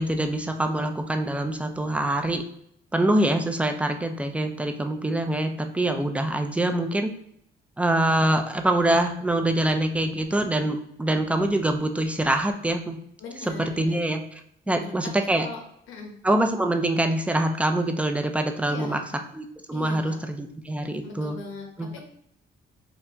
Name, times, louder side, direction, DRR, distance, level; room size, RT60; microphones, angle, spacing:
voice 1, 0.0-2.4 2.9-7.1 7.8-13.0 13.5-14.2 14.7-15.5 16.2-19.0 19.3-21.4 21.8-22.0, right 1 dB, 5° right, 6 dB, 0.4 m, -24 dB
voice 2, 13.2-14.0 14.7-15.1 15.4-15.6 15.9-16.1 18.6-19.2 19.7-20.2 21.0-22.0, left 3 dB, 85° left, 2 dB, 0.9 m, -39 dB
4.3 x 2.6 x 2.8 m, 0.72 s
cardioid pair, 90°, 20 cm